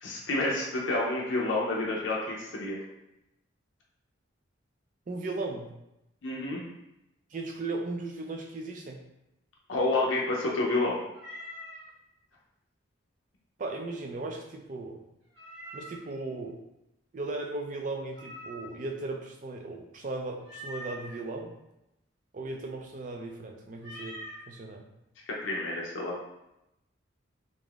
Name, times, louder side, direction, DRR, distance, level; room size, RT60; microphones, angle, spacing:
voice 1, 0.0-2.8 6.2-6.6 9.7-11.0 25.3-26.1, left 2 dB, 75° left, -3 dB, 0.5 m, -29 dB
voice 2, 5.1-5.7 7.3-9.0 13.6-15.0 15.7-16.6 17.1-21.5 22.3-24.2 24.5-24.8, right 2 dB, 40° right, 2 dB, 0.3 m, -37 dB
Meow, 11.1-11.9 15.3-16.1 18.1-18.9 20.4-21.2 23.8-24.4, equal, 70° right, 0.8 m, -43 dB
3.4 x 2.5 x 2.3 m, 0.88 s
head